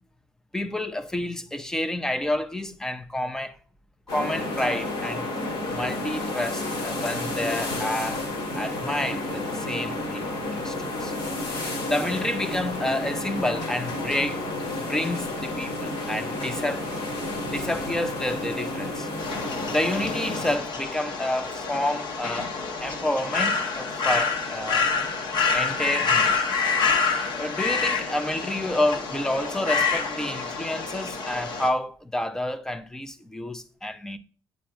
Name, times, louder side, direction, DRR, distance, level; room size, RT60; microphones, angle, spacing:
voice 1, 0.5-3.6 4.1-5.3 5.7-8.2 8.5-11.1 11.9-14.5 14.9-16.9 17.5-19.1 19.7-22.6 22.8-24.9 25.5-26.6 27.3-34.2, left 1 dB, 5° left, 0.4 m, -29 dB
sound 1, 4.1-20.5, left 2 dB, 75° left, 2.5 m, -31 dB
sound 2, 19.2-31.7, left 5 dB, 50° left, 0.9 m, -27 dB
8.5 x 5.1 x 2.4 m
cardioid pair, 165°, 10 cm